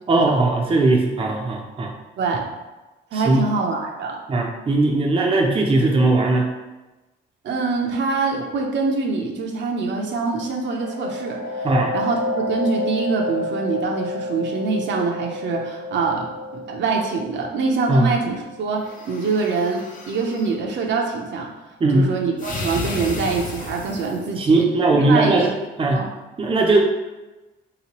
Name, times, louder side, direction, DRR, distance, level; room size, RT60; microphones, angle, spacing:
voice 1, 0.1-1.9 3.1-3.4 4.3-6.5 11.6-11.9 17.9-18.1 21.8-22.1 24.4-25.5 25.8-26.0 26.4-26.8, right 2 dB, 25° right, 0 dB, 0.5 m, -18 dB
voice 2, 3.1-4.2 7.4-11.7 11.9-21.5 21.9-24.6 24.9-25.5 25.9-26.1, right 4 dB, 65° right, 0 dB, 0.6 m, -24 dB
sound 1, 10.3-19.8, left 2 dB, 85° left, 0.4 m, -30 dB
sound 2, 18.8-20.5 22.4-24.3, left 3 dB, 40° left, 0.7 m, -33 dB
3.2 x 2.9 x 2.9 m, 1.1 s
cardioid pair, 90°, 20 cm